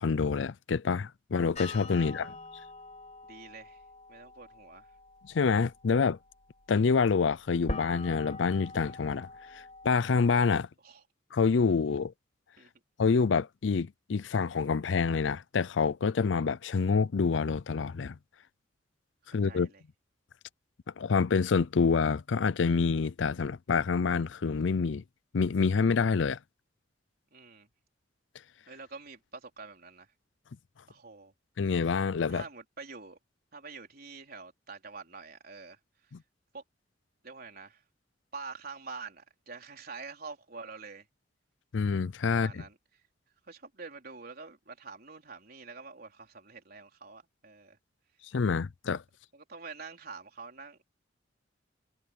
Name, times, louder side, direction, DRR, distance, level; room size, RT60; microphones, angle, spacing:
voice 1, 0.0-2.4 5.2-6.2 6.7-10.7 11.3-12.1 13.0-18.2 19.3-19.7 21.0-25.0 25.3-26.4 31.6-32.4 41.7-42.6 48.3-49.0, left 5 dB, 75° left, 0.5 m, -27 dB
sound 1, 1.5-10.4, left 2 dB, 40° left, 4.0 m, -44 dB
voice 2, 3.2-3.8 4.1-4.9 10.8-11.0 12.6-12.7 19.5-19.8 27.3-27.7 28.7-30.1 30.9-31.3 32.3-33.2 33.5-35.8 36.5-36.6 37.2-37.8 38.3-41.1 42.3-42.8 43.5-47.8 49.3-50.8, right 4 dB, 55° right, 4.1 m, -46 dB
head